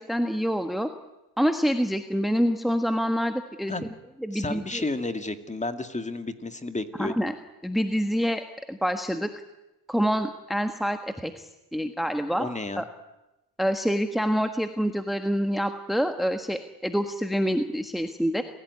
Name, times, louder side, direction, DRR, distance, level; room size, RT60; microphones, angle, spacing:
voice 1, 0.1-0.9 1.4-3.7 4.2-4.9 7.0-7.3 7.6-9.3 9.9-11.3 11.7-12.5 12.8-12.9 13.6-18.4, equal, ahead, 7 dB, 1.5 m, -26 dB
voice 2, 4.3-7.2 12.4-12.8, left 2 dB, 15° left, 8 dB, 2.2 m, -32 dB
28.0 x 16.5 x 9.6 m, 0.97 s
cardioid pair, 85°, 40 cm